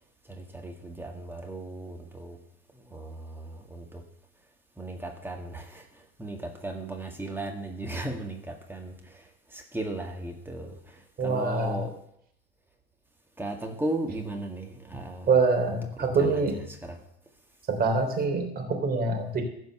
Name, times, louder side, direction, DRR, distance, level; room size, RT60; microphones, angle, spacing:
voice 1, 0.3-2.4 2.8-4.1 4.8-12.0 13.4-15.3 15.7-15.8 16.2-16.6 16.8-17.0, right 2 dB, 5° right, 2 dB, 1.9 m, -36 dB
voice 2, 11.2-11.8 15.3-16.6 17.7-19.4, right 4 dB, 30° right, 4 dB, 3.3 m, -25 dB
15.5 x 5.5 x 6.8 m, 0.74 s
hypercardioid pair, 85°, 32 cm